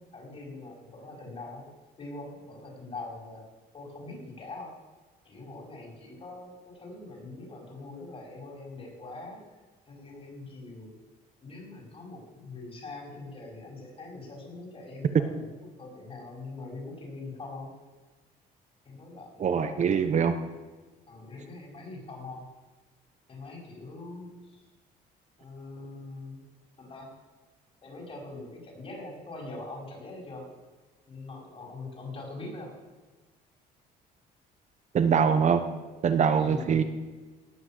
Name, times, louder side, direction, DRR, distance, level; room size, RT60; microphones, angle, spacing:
voice 1, 0.0-1.7 2.0-3.5 3.7-4.7 5.2-9.4 9.9-11.0 11.4-17.7 18.8-20.2 21.1-22.4 23.3-24.6 25.4-26.4 26.8-27.1 27.8-30.4 31.1-32.7 36.4-36.9, left 2 dB, 35° left, -1 dB, 5.1 m, -43 dB
voice 2, 19.4-20.3 34.9-35.6 36.0-36.8, right 7 dB, 45° right, 9 dB, 0.9 m, -23 dB
18.0 x 6.0 x 7.5 m, 1.3 s
cardioid pair, 110°, 17 cm